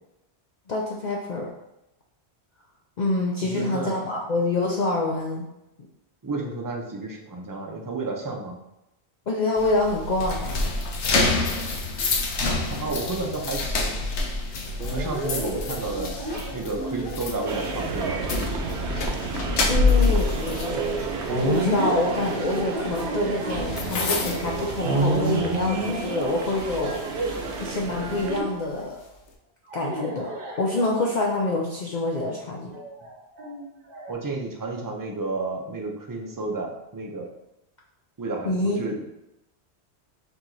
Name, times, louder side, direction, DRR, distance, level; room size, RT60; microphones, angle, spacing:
voice 1, 0.7-1.5 3.0-5.4 9.3-10.6 19.7-21.1 21.4-27.0 27.6-29.0 29.7-32.7 38.5-38.8, left 2 dB, 55° left, -2 dB, 0.5 m, -26 dB
voice 2, 3.4-4.0 6.2-8.6 12.0-12.1 12.7-14.0 14.9-16.1 16.5-18.3 34.1-37.3 38.2-39.0, right 3 dB, 25° right, 0 dB, 0.4 m, -31 dB
sound 1, 9.6-25.5 25.8-26.1 26.6-28.2, left 3 dB, 90° left, 1.0 m, -28 dB
sound 2, 14.8-27.4 28.2-28.8 29.7-31.2 32.7-34.1, right 1 dB, 55° right, 0.9 m, -31 dB
sound 3, 17.5-28.4, right 4 dB, 80° right, 0.9 m, -32 dB
4.5 x 2.8 x 3.9 m, 0.90 s
omnidirectional pair, 1.1 m